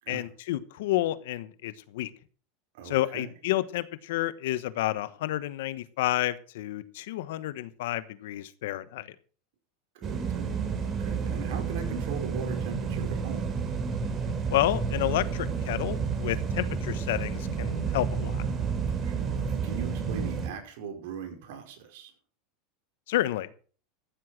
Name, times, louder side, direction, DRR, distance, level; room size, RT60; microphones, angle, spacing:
voice 1, 0.1-2.1 2.8-9.1 14.5-18.4 23.1-23.5, left 15 dB, 75° left, 15 dB, 1.1 m, -30 dB
voice 2, 2.7-3.3 10.0-13.5 19.0-22.1, right 7 dB, 70° right, 2 dB, 5.2 m, -40 dB
sound 1, 10.0-20.5, right 5 dB, 30° right, 3.1 m, -30 dB
14.0 x 7.9 x 6.0 m, 0.42 s
supercardioid pair, 125°, 0 cm